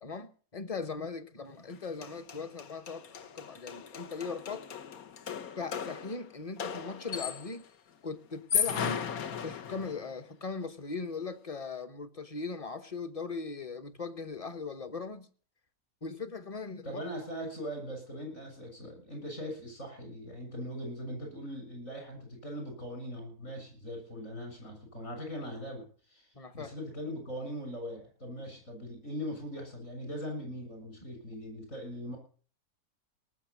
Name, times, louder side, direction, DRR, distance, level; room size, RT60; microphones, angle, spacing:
voice 1, 0.0-4.7 5.6-7.6 8.0-9.1 9.4-15.3 16.0-17.0 26.4-26.7, left 4 dB, 30° left, 0.9 m, -39 dB
sound 1, 1.7-1.8 2.0-7.7 8.3-10.1, left 7 dB, 75° left, 1.6 m, -36 dB
voice 2, 16.8-32.2, equal, 60° left, 7.3 m, -40 dB
18.5 x 7.0 x 8.2 m
omnidirectional pair, 1.5 m